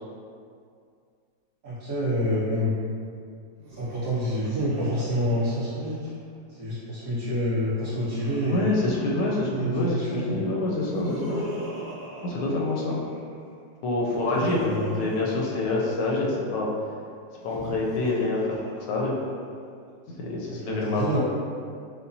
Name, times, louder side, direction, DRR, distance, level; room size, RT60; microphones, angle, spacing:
voice 1, 1.6-2.7 3.7-6.1 6.6-8.7 9.5-10.4 14.3-14.9 20.5-21.2, equal, 45° right, -13 dB, 1.5 m, -28 dB
Laughter, 3.5-6.3 7.4-10.0 10.6-13.4 14.0-16.4 17.3-19.4, right 1 dB, 90° right, 1.5 m, -41 dB
voice 2, 8.4-11.4 12.2-13.0 13.8-16.7 17.4-19.2 20.3-21.2, left 2 dB, 75° left, -3 dB, 1.2 m, -26 dB
5.4 x 2.1 x 2.7 m, 2.3 s
omnidirectional pair, 2.0 m